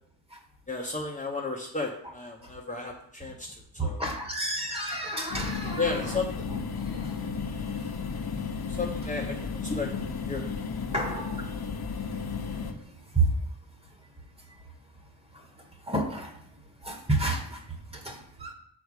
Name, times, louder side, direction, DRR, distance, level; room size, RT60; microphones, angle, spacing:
voice 1, 0.7-3.5 3.8-4.0 5.8-6.4 8.8-9.3 9.6-9.9 10.3-10.5, left 3 dB, 20° left, -1 dB, 0.9 m, -33 dB
voice 2, 3.8-6.2 6.5-7.7 10.9-11.5 12.8-12.9 13.1-13.4 15.3-15.4 15.9-16.4 16.8-18.5, right 2 dB, 15° right, 2 dB, 1.5 m, -31 dB
sound 1, 5.3-12.7, left 5 dB, 70° left, 1.1 m, -33 dB
6.3 x 4.8 x 6.4 m, 0.67 s
wide cardioid pair, 120°, 38 cm